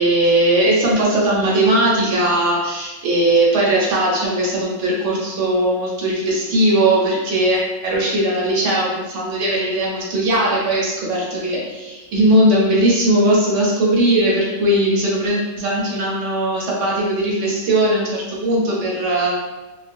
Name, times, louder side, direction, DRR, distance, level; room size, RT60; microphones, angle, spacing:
voice 1, 0.0-19.3, right 1 dB, 70° right, -4 dB, 0.9 m, -18 dB
2.3 x 2.1 x 2.5 m, 1.1 s
omnidirectional pair, 1.4 m